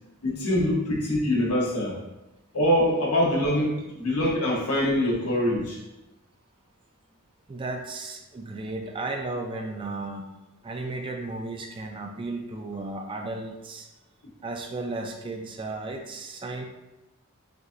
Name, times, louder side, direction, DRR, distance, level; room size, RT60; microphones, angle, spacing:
voice 1, 0.2-1.9 2.5-5.8, left 1 dB, 85° left, -4 dB, 1.2 m, -24 dB
voice 2, 7.5-10.2 10.6-13.9 14.4-16.6, right 2 dB, 25° right, 3 dB, 0.3 m, -34 dB
6.0 x 2.7 x 2.5 m, 0.98 s
head